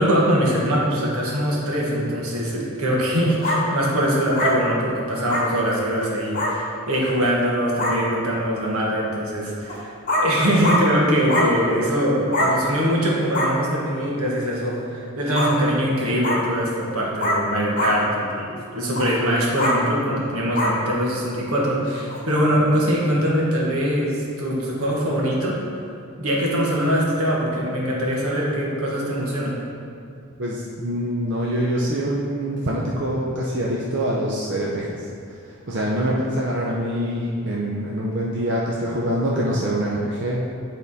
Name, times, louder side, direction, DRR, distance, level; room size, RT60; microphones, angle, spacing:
voice 1, 0.0-9.9 10.2-25.6 26.2-29.6, equal, 80° right, -4 dB, 1.5 m, -22 dB
sound 1, 3.4-3.6 4.4-4.5 5.3-5.5 6.3-6.5 7.4-7.5 7.8-8.0 9.7-9.8 10.1-10.3 10.6-10.8 11.3-11.5 12.3-12.5 13.3-13.5 15.3-15.5 16.2-16.4 17.2-17.4 17.8-17.9 18.9-19.1 19.6-19.8 20.6-20.7 22.1-22.2, left 1 dB, 40° left, 1.0 m, -22 dB
voice 2, 30.4-40.4, right 1 dB, 50° right, -4 dB, 0.6 m, -25 dB
9.9 x 3.6 x 4.1 m, 2.4 s
head